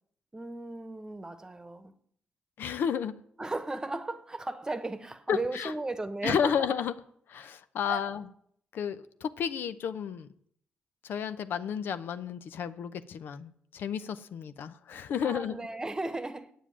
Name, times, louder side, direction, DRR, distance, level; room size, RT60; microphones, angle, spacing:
voice 1, 0.3-1.9 3.4-6.6 7.9-8.1 15.2-16.5, right 2 dB, 20° right, 1.1 m, -36 dB
voice 2, 2.6-3.2 5.3-5.7 6.2-6.9 7.3-8.2 8.7-10.3 11.0-15.6, left 7 dB, 75° left, 0.7 m, -32 dB
8.6 x 7.3 x 8.7 m
cardioid pair, 75°, 4 cm